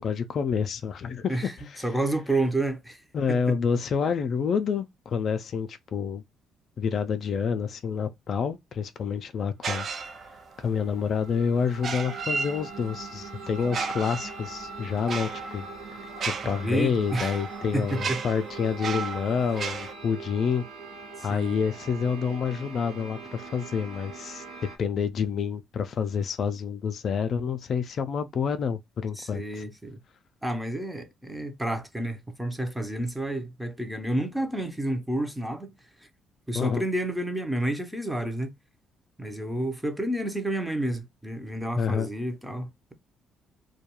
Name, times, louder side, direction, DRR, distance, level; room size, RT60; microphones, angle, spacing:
voice 1, 0.0-1.4 3.1-6.2 6.8-9.9 10.6-15.7 16.3-20.6 21.2-24.4 24.8-29.6 36.5-36.8 41.8-42.1, left 6 dB, 55° left, 0.3 m, -28 dB
voice 2, 1.3-3.0 3.3-3.6 16.4-17.4 17.7-18.2 21.2-21.6 29.2-30.0 30.4-35.7 36.5-38.5 39.2-42.9, right 1 dB, 5° right, 0.6 m, -30 dB
sound 1, 9.6-10.6 11.7-13.0 13.6-19.9, right 5 dB, 45° right, 0.4 m, -34 dB
sound 2, 10.0-24.8, right 4 dB, 90° right, 0.8 m, -42 dB
2.3 x 2.2 x 2.9 m
cardioid pair, 100°, 0 cm